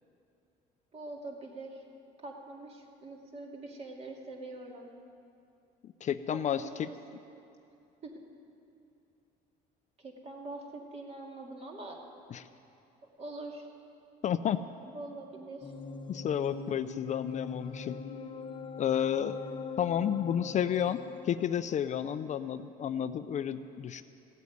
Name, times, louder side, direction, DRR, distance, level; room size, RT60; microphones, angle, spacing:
voice 1, 0.9-1.8 2.2-4.9 6.3-7.0 8.0-8.2 10.0-12.1 13.2-13.7 14.9-15.7, right 2 dB, 40° right, 0 dB, 2.3 m, -44 dB
voice 2, 5.8-6.9 12.3-12.5 14.2-14.6 16.1-18.0 18.8-19.4 19.8-24.0, left 9 dB, 45° left, 12 dB, 0.4 m, -31 dB
sound 1, 15.6-22.1, left 5 dB, 30° left, 0.9 m, -42 dB
15.5 x 8.3 x 9.4 m, 2.7 s
cardioid pair, 110°, 17 cm